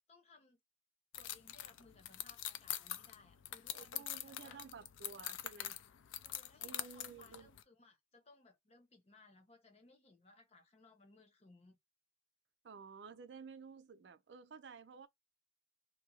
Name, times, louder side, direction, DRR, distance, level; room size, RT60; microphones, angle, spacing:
voice 1, 0.1-0.6 1.2-4.6 6.2-11.8, left 3 dB, 35° left, 0.8 m, -64 dB
sound 1, 1.1-7.6, left 12 dB, 80° left, 0.4 m, -45 dB
voice 2, 3.7-5.8 6.6-7.5 12.6-15.1, right 5 dB, 60° right, 0.4 m, -53 dB
2.7 x 2.5 x 2.8 m
head